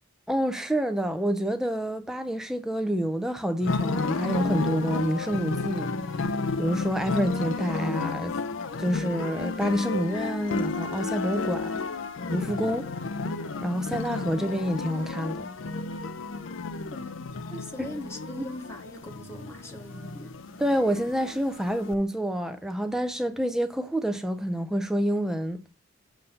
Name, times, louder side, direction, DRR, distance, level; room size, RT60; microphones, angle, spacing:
voice 1, 0.3-5.9 6.6-8.3 8.8-11.8 12.3-12.9 13.6-15.5 17.8-17.9 20.6-25.6, equal, ahead, 0.3 m, -28 dB
sound 1, 3.6-22.0, left 3 dB, 65° left, 0.5 m, -32 dB
voice 2, 16.9-20.4, left 1 dB, 15° left, 0.8 m, -41 dB
7.1 x 2.6 x 5.5 m
head